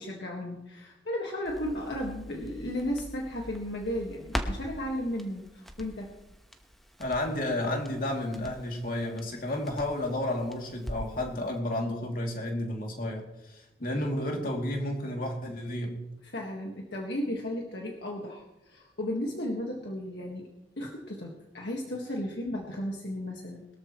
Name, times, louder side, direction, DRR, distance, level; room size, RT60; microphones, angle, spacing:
voice 1, 0.0-6.1 16.2-20.5 20.8-23.7, left 1 dB, 70° left, 0 dB, 1.7 m, -34 dB
Crackle, 1.5-11.3 11.6-11.7, equal, ahead, 1.1 m, -42 dB
voice 2, 7.0-16.0, left 1 dB, 50° left, 0 dB, 2.8 m, -32 dB
22.0 x 13.5 x 3.1 m, 0.93 s
head